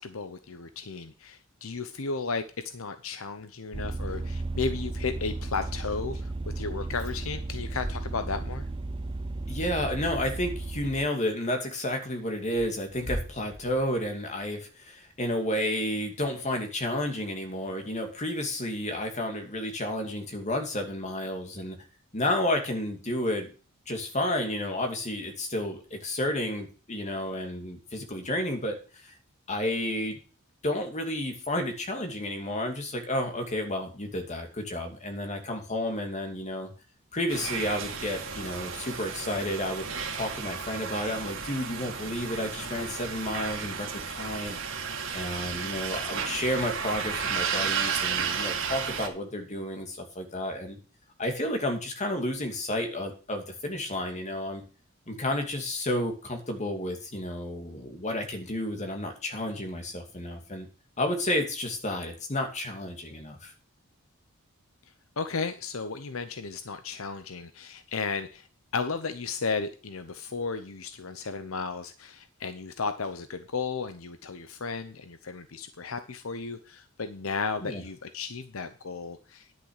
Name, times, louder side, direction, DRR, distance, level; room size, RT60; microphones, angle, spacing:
voice 1, 0.0-8.7 65.2-68.5 68.7-79.5, left 4 dB, 75° left, 10 dB, 0.8 m, -34 dB
Vehicle, 3.7-11.1, right 2 dB, 25° right, 0.5 m, -34 dB
voice 2, 9.5-21.8 22.1-23.5 23.9-29.1 29.5-30.2 30.6-36.7 37.1-39.8 40.1-44.6 45.1-50.8 51.2-54.6 55.1-60.7 61.0-63.5 77.6-77.8, left 1 dB, 35° left, 4 dB, 2.5 m, -31 dB
sound 1, 12.8-14.5, equal, 5° right, 3.8 m, -39 dB
sound 2, 37.3-49.1, right 6 dB, 65° right, 2.1 m, -33 dB
10.5 x 6.4 x 6.5 m, 0.36 s
head